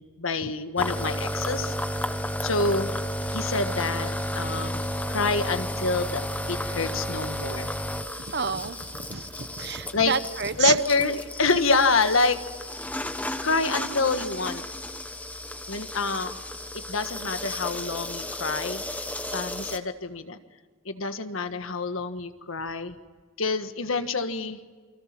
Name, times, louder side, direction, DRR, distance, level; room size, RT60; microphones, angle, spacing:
voice 1, 0.0-1.7 2.4-2.9 3.3-6.2 6.5-7.7 9.9-10.1 10.6-12.4 13.4-14.6 15.7-16.4 16.9-19.0 19.3-20.4 20.8-23.0 23.4-24.6, left 3 dB, 85° left, 9 dB, 1.6 m, -27 dB
sound 1, 0.8-19.8, left 1 dB, 10° left, 1.1 m, -33 dB
voice 2, 8.3-10.8, right 6 dB, 55° right, 13 dB, 1.0 m, -29 dB
29.0 x 24.5 x 6.1 m, 1.5 s
head